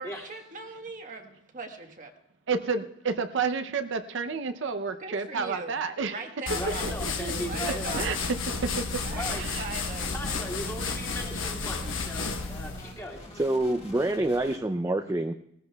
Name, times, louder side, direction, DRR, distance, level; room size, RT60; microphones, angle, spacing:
voice 1, 0.0-2.1 5.0-5.7 6.1-6.9 7.5-8.2 9.0-10.1, right 3 dB, 40° right, 4 dB, 1.2 m, -39 dB
voice 2, 2.5-6.2 6.8-7.3 7.6-8.2 8.6-8.9 9.3-9.6, right 5 dB, 65° right, 7 dB, 0.6 m, -30 dB
sound 1, 6.5-13.0, left 4 dB, 80° left, 1.0 m, -32 dB
voice 3, 6.5-8.0 9.1-9.4 10.1-13.2, equal, 15° left, -4 dB, 2.1 m, -37 dB
sound 2, 7.3-14.6, left 1 dB, 30° left, 1.6 m, -46 dB
voice 4, 13.4-15.3, right 1 dB, 15° right, 6 dB, 0.4 m, -26 dB
18.5 x 14.5 x 2.3 m, 0.77 s
head